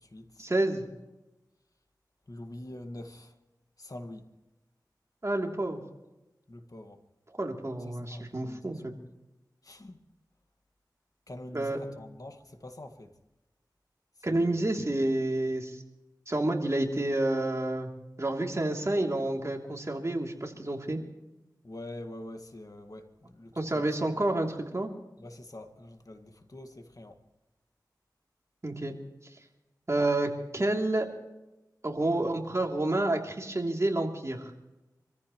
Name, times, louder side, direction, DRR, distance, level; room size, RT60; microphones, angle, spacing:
voice 1, 0.4-0.9 5.2-5.8 7.4-8.9 11.5-11.8 14.2-15.8 16.3-17.9 18.2-21.0 23.6-24.9 28.6-28.9 29.9-31.1 31.8-34.5, right 2 dB, 40° right, 1 dB, 3.1 m, -29 dB
voice 2, 2.3-3.3 3.8-4.3 6.5-7.0 8.0-9.0 9.6-10.0 11.3-13.1 14.2-14.7 21.6-24.1 25.2-27.2 32.0-32.3, left 1 dB, 50° left, 5 dB, 1.9 m, -45 dB
26.0 x 14.5 x 3.2 m, 1.0 s
cardioid pair, 40°, 7 cm